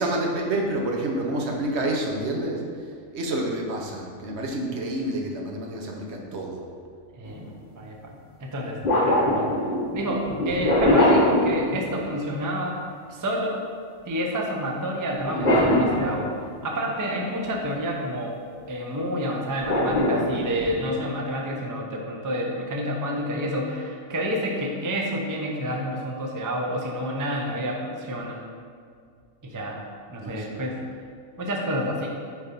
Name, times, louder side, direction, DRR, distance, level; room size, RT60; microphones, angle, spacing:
voice 1, 0.0-2.6 3.1-6.6 15.3-15.7 30.2-30.7, right 1 dB, 65° right, 0 dB, 1.0 m, -28 dB
sound 1, 7.3-7.5 8.8-12.2 15.2-16.6 19.6-20.9, left 1 dB, 40° left, 0.9 m, -22 dB
voice 2, 7.7-8.1 8.4-8.8 9.0-9.6 9.9-12.8 13.1-13.6 14.1-16.3 16.6-18.4 18.7-28.4 29.4-29.8 30.1-30.8 31.4-32.1, equal, 25° right, 0 dB, 0.4 m, -29 dB
4.6 x 4.1 x 5.2 m, 2.2 s
omnidirectional pair, 1.3 m